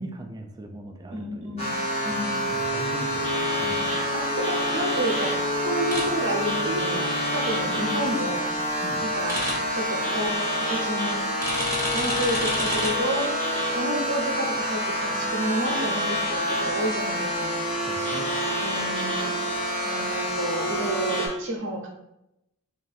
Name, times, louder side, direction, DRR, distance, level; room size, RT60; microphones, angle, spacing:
voice 1, 0.0-1.7 2.1-3.9 8.8-9.1 17.8-18.3, right 1 dB, 20° right, 4 dB, 0.3 m, -40 dB
voice 2, 1.1-1.8 2.0-2.4 3.6-8.5 9.0-9.4 9.7-10.3 10.7-11.2 11.9-13.3 13.7-17.6 18.6-19.4 19.8-21.9, right 1 dB, 60° right, 1 dB, 0.7 m, -30 dB
sound 1, 1.6-21.3, equal, 30° left, 1.2 m, -27 dB
sound 2, 5.9-6.0 9.3-9.5 11.4-12.9, equal, 15° left, 1.0 m, -28 dB
3.6 x 2.4 x 4.0 m, 0.86 s
head